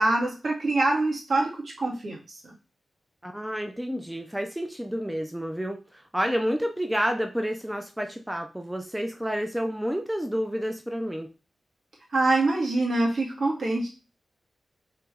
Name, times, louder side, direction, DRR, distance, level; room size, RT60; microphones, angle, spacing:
voice 1, 0.0-2.2 12.1-13.9, right 2 dB, 60° right, -2 dB, 1.6 m, -24 dB
voice 2, 3.2-11.3, equal, 5° right, 5 dB, 0.5 m, -29 dB
3.2 x 3.0 x 4.6 m, 0.31 s
cardioid pair, 70°, 0 cm